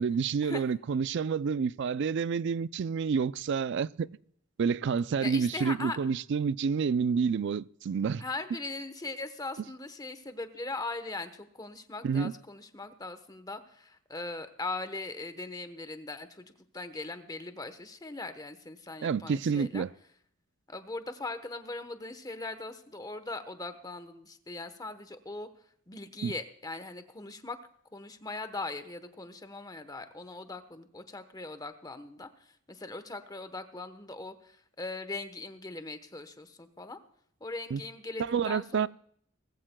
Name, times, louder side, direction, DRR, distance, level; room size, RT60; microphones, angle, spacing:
voice 1, 0.0-4.1 4.6-8.2 12.0-12.3 19.0-19.9 26.2-26.3 37.7-37.8 38.2-38.9, right 6 dB, 60° right, 0.4 m, -29 dB
voice 2, 5.2-6.0 8.2-16.5 16.7-19.8 20.7-25.5 25.9-27.6 27.9-37.0 37.4-38.9, left 3 dB, 20° left, 1.0 m, -40 dB
19.5 x 15.0 x 2.2 m
head